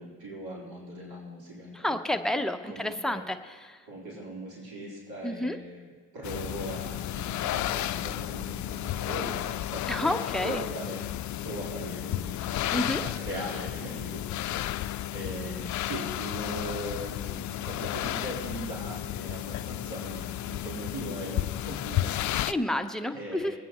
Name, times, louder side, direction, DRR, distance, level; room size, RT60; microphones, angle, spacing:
voice 1, 0.0-2.3 2.6-3.2 3.9-10.1 10.4-11.0 11.4-22.5 23.1-23.5, right 1 dB, 70° right, -5 dB, 4.2 m, -40 dB
voice 2, 1.7-3.8 5.2-5.6 9.9-10.6 12.7-13.0 22.5-23.5, left 1 dB, ahead, 5 dB, 0.8 m, -30 dB
sound 1, 6.2-22.5, left 13 dB, 50° left, 0.5 m, -33 dB
23.0 x 9.3 x 3.1 m, 1.5 s
supercardioid pair, 60°, 38 cm